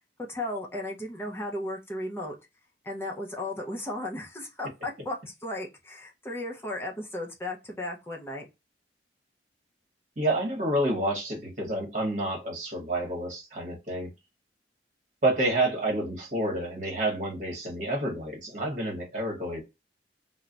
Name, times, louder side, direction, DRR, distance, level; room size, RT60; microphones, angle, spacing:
voice 1, 0.3-2.4 2.8-8.5, left 1 dB, 15° left, 0.5 m, -35 dB
voice 2, 10.2-14.1 15.2-19.6, right 1 dB, 45° right, 1.0 m, -29 dB
2.3 x 2.0 x 3.7 m
head